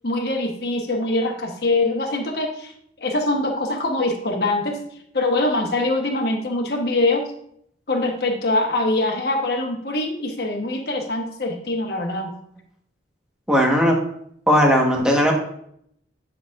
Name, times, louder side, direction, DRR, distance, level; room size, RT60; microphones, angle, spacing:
voice 1, 0.0-2.7 3.0-4.8 5.1-7.3 7.9-12.3, left 2 dB, 60° left, 1 dB, 1.1 m, -23 dB
voice 2, 13.5-14.0 14.5-15.3, equal, 5° right, -1 dB, 1.2 m, -17 dB
10.0 x 5.8 x 2.5 m, 0.69 s
head